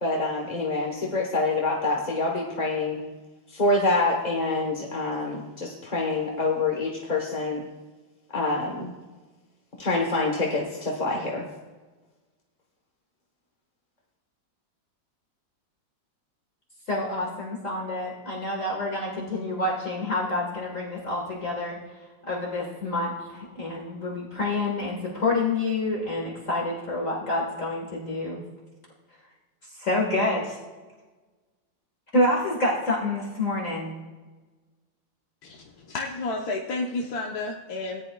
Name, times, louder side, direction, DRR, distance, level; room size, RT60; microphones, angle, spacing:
voice 1, 0.0-3.0 3.5-7.6 8.3-8.9 9.8-11.5, left 2 dB, 30° left, -1 dB, 1.0 m, -26 dB
voice 2, 16.9-21.8 22.2-28.4 29.7-30.6 32.1-34.0, left 2 dB, 45° left, -3 dB, 1.9 m, -28 dB
voice 3, 35.4-38.0, left 3 dB, 60° left, -1 dB, 1.3 m, -31 dB
18.5 x 10.5 x 2.3 m, 1.3 s
omnidirectional pair, 2.0 m